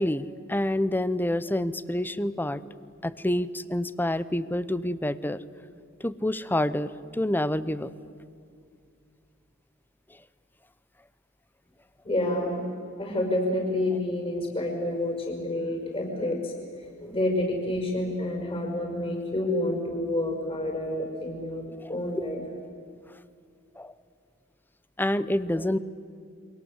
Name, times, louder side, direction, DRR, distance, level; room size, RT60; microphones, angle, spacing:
voice 1, 0.0-2.6 3.0-5.4 6.0-7.9 21.8-22.3 23.8-23.9 25.0-25.8, left 1 dB, 10° left, 16 dB, 0.8 m, -28 dB
voice 2, 12.0-12.7 13.0-16.6 17.0-22.4, left 1 dB, 30° left, 2 dB, 5.5 m, -29 dB
29.0 x 24.5 x 8.1 m, 2.4 s
head